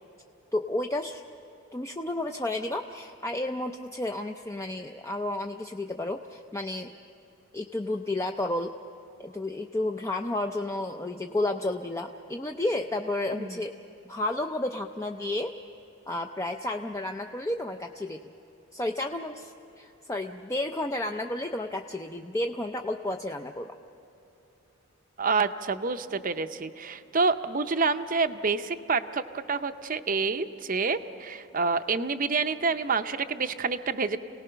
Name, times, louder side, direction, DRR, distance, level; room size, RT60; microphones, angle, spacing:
voice 1, 0.5-1.2 1.7-6.9 7.5-8.7 9.2-13.7 14.1-15.5 16.1-18.2 18.7-23.7, left 1 dB, 15° left, 3 dB, 0.5 m, -31 dB
voice 2, 25.2-34.2, right 4 dB, 40° right, 10 dB, 0.6 m, -28 dB
28.5 x 18.5 x 5.7 m, 3.0 s
head